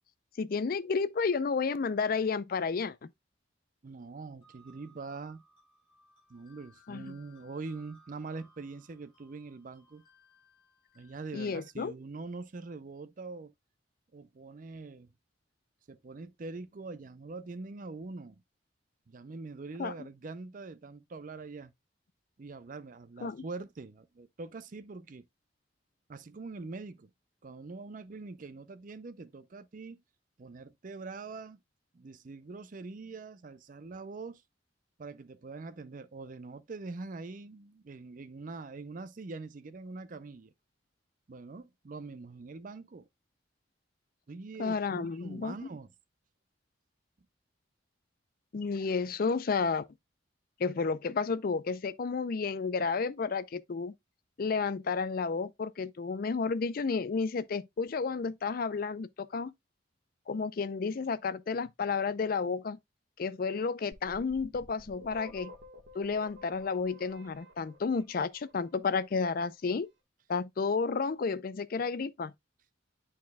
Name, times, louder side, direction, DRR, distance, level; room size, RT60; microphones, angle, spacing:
voice 1, 0.4-3.1 6.9-7.1 11.3-11.9 19.8-19.9 23.2-23.4 44.6-45.5 48.5-49.8 50.6-53.9 54.4-59.5 60.3-62.8 63.2-65.5 65.9-69.9 70.3-72.3, left 5 dB, 50° left, 0.4 m, -31 dB
voice 2, 3.8-5.4 6.3-10.0 10.9-13.5 14.1-15.1 15.9-18.4 19.1-21.7 22.4-25.3 26.1-27.1 27.4-30.0 30.4-31.6 31.9-34.4 35.0-40.5 41.3-43.1 44.3-45.9, right 3 dB, 45° right, 0.5 m, -43 dB
sound 1, 4.4-11.7, left 1 dB, 25° left, 5.3 m, -63 dB
sound 2, 63.9-68.8, left 1 dB, 80° right, 1.6 m, -51 dB
10.5 x 4.3 x 2.2 m
head